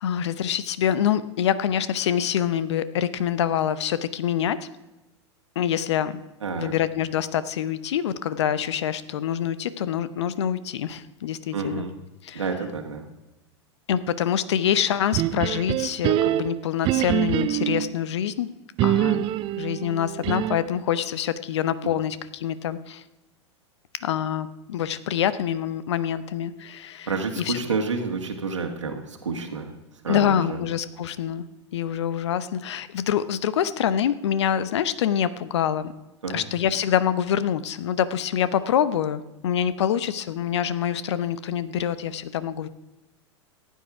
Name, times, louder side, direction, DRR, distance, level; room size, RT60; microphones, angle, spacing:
voice 1, 0.0-4.7 5.6-6.2 6.6-11.9 12.2-12.4 13.9-18.5 18.8-19.3 19.6-23.0 24.0-27.1 27.4-27.6 30.1-31.4 31.7-35.9 36.3-42.7, left 9 dB, 70° left, 15 dB, 0.8 m, -25 dB
voice 2, 6.4-6.7 11.5-11.9 12.3-13.1 21.8-21.9 27.1-29.7 30.0-30.6 36.2-36.4, right 4 dB, 85° right, 2 dB, 1.6 m, -29 dB
sound 1, 15.1-17.9 18.8-20.8, right 13 dB, 35° right, 0.5 m, -25 dB
15.0 x 9.3 x 4.9 m, 1.0 s
hypercardioid pair, 95°, 15 cm